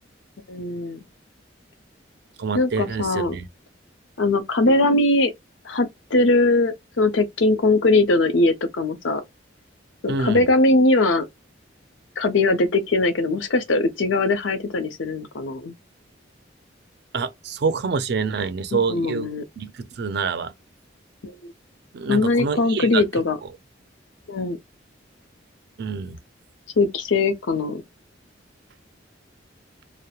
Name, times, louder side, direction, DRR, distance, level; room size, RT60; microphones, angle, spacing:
voice 1, 0.5-1.0 2.5-3.3 4.2-5.3 5.6-9.2 10.0-11.3 12.2-15.7 18.7-19.4 21.2-21.5 22.1-23.4 24.3-24.6 26.8-27.8, left 2 dB, 80° left, 0.6 m, -21 dB
voice 2, 2.4-3.5 10.1-10.4 17.1-19.3 19.6-20.5 21.9-23.1 25.8-26.2, right 5 dB, 60° right, 0.4 m, -26 dB
2.9 x 2.0 x 2.3 m
head